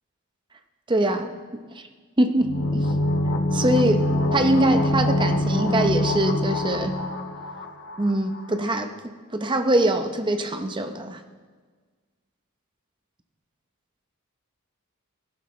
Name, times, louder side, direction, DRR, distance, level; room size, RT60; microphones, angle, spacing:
voice 1, 0.9-1.6 2.2-2.9 3.5-7.0 8.0-8.9 9.3-11.2, right 1 dB, 20° right, 7 dB, 0.7 m, -23 dB
sound 1, 2.4-8.1 8.3-8.4, left 1 dB, 55° left, 1.1 m, -24 dB
17.0 x 11.5 x 3.2 m, 1.5 s
head